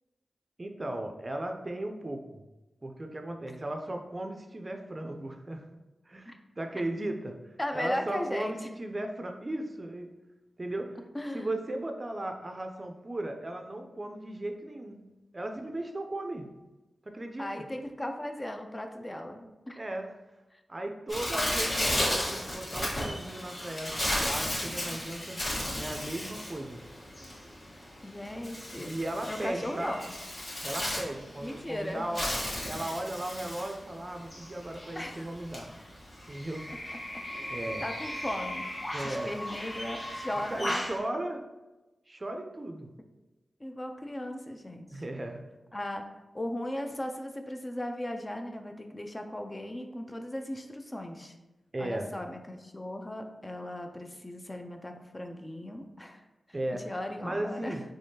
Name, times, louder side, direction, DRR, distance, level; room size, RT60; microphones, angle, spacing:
voice 1, 0.6-2.4 2.8-5.7 6.1-10.1 10.6-11.0 11.3-15.0 15.3-16.5 17.1-17.6 19.8-20.1 20.7-25.4 25.8-26.8 28.8-30.0 30.6-32.3 32.6-35.7 36.3-36.9 37.5-37.9 38.9-39.3 40.5-41.5 42.1-42.9 44.9-45.5 51.7-52.1 56.5-56.9 57.2-57.8, right 1 dB, 35° right, 5 dB, 0.4 m, -36 dB
voice 2, 7.6-8.7 11.1-11.5 17.4-19.8 20.5-20.6 28.0-28.9 29.3-30.2 31.4-32.1 35.0-35.3 36.7-36.8 37.1-37.5 37.8-38.7 39.0-40.8 43.6-45.0 45.7-46.1 46.3-51.4 51.8-56.2 56.7-57.8, left 1 dB, 25° left, 5 dB, 0.4 m, -37 dB
Bird, 21.1-41.0, left 1 dB, 50° left, 1.1 m, -35 dB
3.4 x 3.3 x 2.7 m, 1.1 s
cardioid pair, 45°, 0 cm